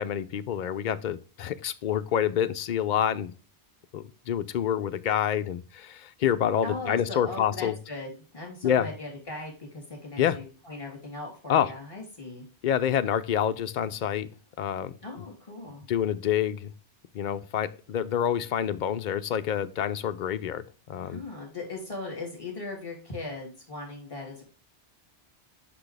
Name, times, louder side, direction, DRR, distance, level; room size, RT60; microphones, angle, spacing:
voice 1, 0.0-3.3 3.9-7.7 8.6-8.9 10.2-10.4 11.5-11.7 12.6-14.3 14.6-14.9 15.9-16.7 17.1-21.2, left 9 dB, 55° left, 11 dB, 0.5 m, -27 dB
voice 2, 6.6-12.5 15.0-15.9 21.0-24.4, left 2 dB, 30° left, 0 dB, 2.8 m, -39 dB
6.1 x 5.8 x 3.3 m, 0.36 s
omnidirectional pair, 1.2 m